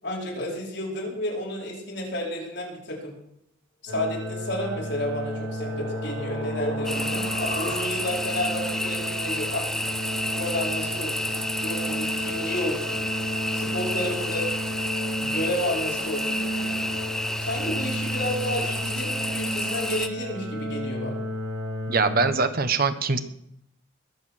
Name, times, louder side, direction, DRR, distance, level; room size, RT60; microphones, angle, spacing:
voice 1, 0.0-3.1 3.8-9.8 10.4-13.0 13.5-14.5 15.2-16.8 17.4-21.2, left 1 dB, 60° left, -3 dB, 4.9 m, -31 dB
sound 1, 3.9-22.3, equal, 80° right, 5.3 m, -33 dB
sound 2, 4.8-8.3, left 2 dB, 40° left, 3.8 m, -36 dB
sound 3, 6.8-20.1, left 1 dB, ahead, 0.5 m, -30 dB
voice 2, 21.9-23.2, right 4 dB, 50° right, 10 dB, 1.0 m, -23 dB
21.0 x 8.0 x 6.4 m, 0.80 s
head